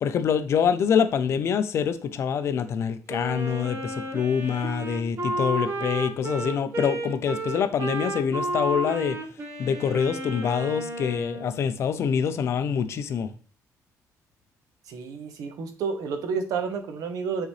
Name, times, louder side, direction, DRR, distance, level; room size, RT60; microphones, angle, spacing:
voice 1, 0.0-9.2 9.6-13.3, left 7 dB, 50° left, 0.6 m, -25 dB
Wind instrument woodwind instrument, 3.1-11.6, right 2 dB, 50° right, 1.3 m, -32 dB
voice 2, 14.9-17.5, right 5 dB, 75° right, 1.2 m, -30 dB
8.9 x 4.0 x 3.2 m
cardioid pair, 175°, 6 cm